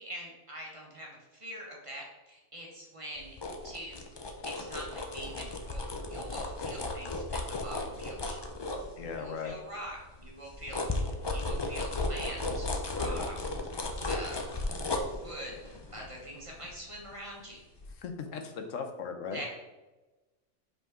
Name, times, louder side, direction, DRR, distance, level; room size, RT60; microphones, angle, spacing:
voice 1, 0.0-3.4 3.6-4.0 4.4-5.8 6.1-8.4 9.1-13.3 14.1-14.5 15.1-17.6 19.3-19.5, equal, 25° right, -2 dB, 1.1 m, -44 dB
sound 1, 3.2-9.4 9.9-17.4 17.8-17.9, left 2 dB, 35° left, 0.4 m, -35 dB
voice 2, 9.0-9.5 13.0-13.3 18.0-19.4, left 5 dB, 80° left, 5 dB, 1.1 m, -38 dB
5.3 x 5.2 x 3.6 m, 1.1 s
omnidirectional pair, 1.3 m